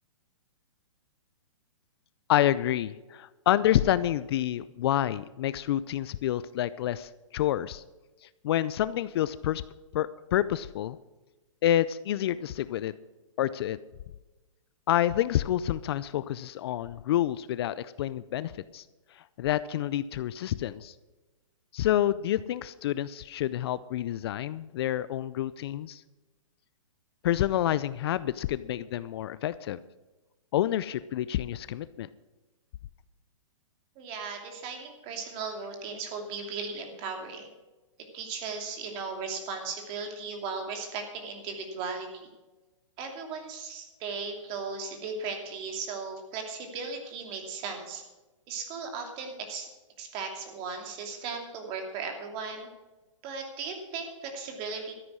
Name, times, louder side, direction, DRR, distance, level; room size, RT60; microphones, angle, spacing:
voice 1, 2.3-7.8 8.4-9.6 9.9-11.0 11.6-12.9 13.4-13.8 14.9-18.8 19.4-20.9 21.7-26.0 27.2-29.8 30.5-32.1, left 12 dB, 50° left, 17 dB, 0.5 m, -28 dB
voice 2, 34.0-37.5 38.1-42.3 43.0-48.0 48.5-49.7 50.0-52.7 53.2-54.9, right 4 dB, 35° right, 4 dB, 2.8 m, -37 dB
13.0 x 9.4 x 6.2 m, 1.1 s
hypercardioid pair, 135°, 17 cm